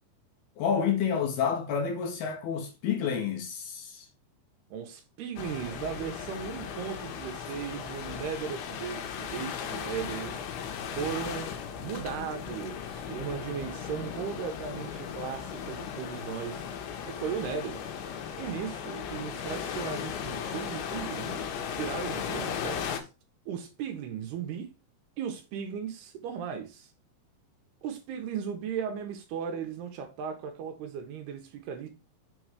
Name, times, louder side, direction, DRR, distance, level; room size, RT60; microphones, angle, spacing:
voice 1, 0.6-4.1, left 7 dB, 70° left, 2.8 m, -29 dB
voice 2, 4.7-11.5 11.8-17.8 18.4-21.4 21.8-23.1 23.5-24.7 25.2-26.9 27.8-31.9, right 7 dB, 75° right, 2.6 m, -37 dB
sound 1, 5.4-23.0, left 7 dB, 85° left, 3.5 m, -37 dB
7.3 x 3.8 x 4.8 m
omnidirectional pair, 5.1 m